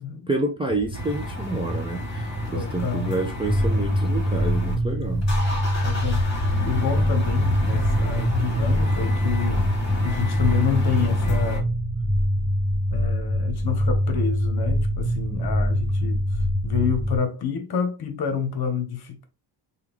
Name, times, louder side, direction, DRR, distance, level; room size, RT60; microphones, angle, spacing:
voice 1, 0.3-5.3, right 2 dB, 10° right, 0.4 m, -28 dB
sound 1, 0.7-10.2, equal, 50° right, 1.1 m, -35 dB
sound 2, 0.9-4.8 5.1-11.6, left 1 dB, 35° left, 1.5 m, -31 dB
voice 2, 2.5-3.2 5.8-9.7 10.0-11.7 12.9-16.2 16.6-19.2, left 7 dB, 50° left, 1.0 m, -28 dB
sound 3, 3.5-17.2, equal, 15° left, 2.0 m, -24 dB
3.5 x 2.4 x 3.1 m
cardioid pair, 100°, 49 cm